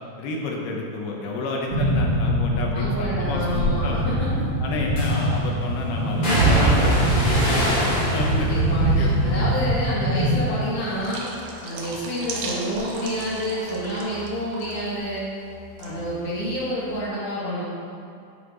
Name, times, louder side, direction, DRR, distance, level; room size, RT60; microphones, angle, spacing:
voice 1, 0.2-4.0 4.6-7.8 8.1-9.5 15.8-16.0, left 3 dB, 90° left, -1 dB, 2.9 m, -30 dB
sound 1, 1.7-10.4, right 1 dB, 90° right, 1.0 m, -24 dB
voice 2, 2.7-4.4 6.1-6.4 8.2-11.2 11.6-15.2 15.8-17.6, equal, 70° left, -14 dB, 4.1 m, -28 dB
sound 2, 3.5-3.7 5.0-5.4 6.2-10.5 10.8-11.4 11.8-15.1 15.3-16.5 16.7-16.9, right 1 dB, 40° left, 1.9 m, -26 dB
sound 3, 11.0-14.3 14.5-14.9 15.8-15.9, right 3 dB, 70° right, 2.3 m, -36 dB
10.0 x 5.4 x 4.0 m, 2.4 s
omnidirectional pair, 4.4 m